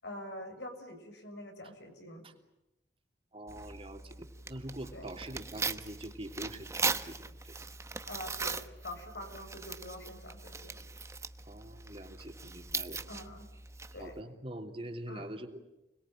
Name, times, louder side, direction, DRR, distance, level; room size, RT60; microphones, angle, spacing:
voice 1, 0.0-2.2 4.9-5.1 8.0-10.9 13.1-13.5 13.9-14.2 15.1-15.3, left 1 dB, 75° left, 4 dB, 6.7 m, -45 dB
voice 2, 3.3-7.2 7.4-7.5 11.4-13.0 14.0-15.6, right 1 dB, 30° right, 4 dB, 3.2 m, -44 dB
Tearing, 3.5-14.2, right 4 dB, 15° right, 1.0 m, -40 dB
30.0 x 21.5 x 9.1 m, 0.93 s
head